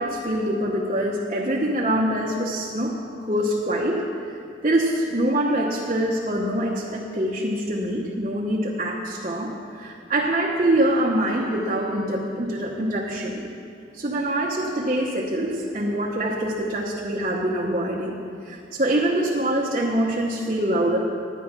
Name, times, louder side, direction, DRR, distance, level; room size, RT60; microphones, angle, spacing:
voice 1, 0.0-3.0 3.2-4.0 4.6-13.4 13.9-18.2 18.4-21.0, right 1 dB, 35° right, -4 dB, 0.9 m, -24 dB
10.5 x 10.0 x 6.0 m, 2.4 s
head